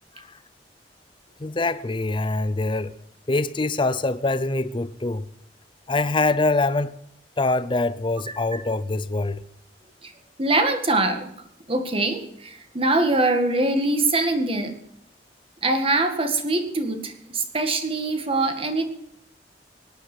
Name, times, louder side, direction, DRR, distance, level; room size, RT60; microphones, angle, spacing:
voice 1, 1.4-2.9 3.3-5.3 5.9-6.9 7.4-9.4, left 2 dB, 25° left, 0.6 m, -24 dB
voice 2, 8.3-8.6 10.0-10.1 10.4-11.3 11.7-14.8 15.6-18.9, right 2 dB, 30° right, 1.9 m, -23 dB
18.5 x 11.0 x 6.2 m
head